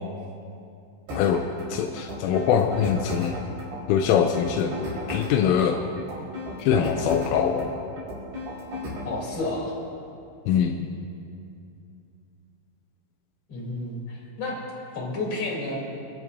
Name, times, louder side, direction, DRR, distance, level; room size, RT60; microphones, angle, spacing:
sound 1, 1.1-9.1, left 1 dB, 55° right, 6.2 m, -35 dB
voice 1, 1.7-3.3 3.9-5.8 6.6-7.7 10.5-10.9, left 8 dB, 85° left, 4 dB, 3.1 m, -23 dB
voice 2, 9.0-9.8 13.5-14.6 14.9-15.7, left 2 dB, 35° left, -4 dB, 3.9 m, -31 dB
29.5 x 11.5 x 2.7 m, 2.6 s
omnidirectional pair, 5.7 m